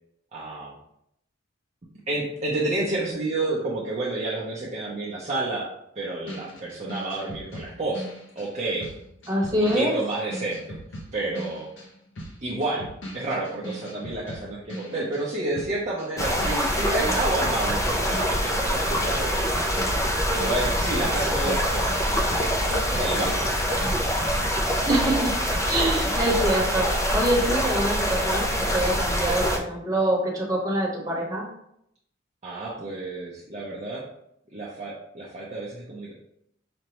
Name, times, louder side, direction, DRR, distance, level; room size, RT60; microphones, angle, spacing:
voice 1, 0.3-0.8 2.1-5.7 6.0-8.1 8.4-8.9 9.7-10.8 11.1-11.7 12.4-12.9 13.1-19.4 20.3-23.9 32.4-34.0 34.5-36.1, right 2 dB, 35° right, -6 dB, 0.6 m, -30 dB
sound 1, 6.3-15.3 15.5-24.5, equal, 65° left, 0.8 m, -40 dB
voice 2, 9.3-10.0 24.9-25.3 25.7-26.9 27.1-31.5, right 1 dB, 20° right, -4 dB, 1.0 m, -25 dB
sound 2, 16.2-29.6, equal, 15° left, 0.4 m, -25 dB
5.1 x 2.2 x 2.9 m, 0.76 s
head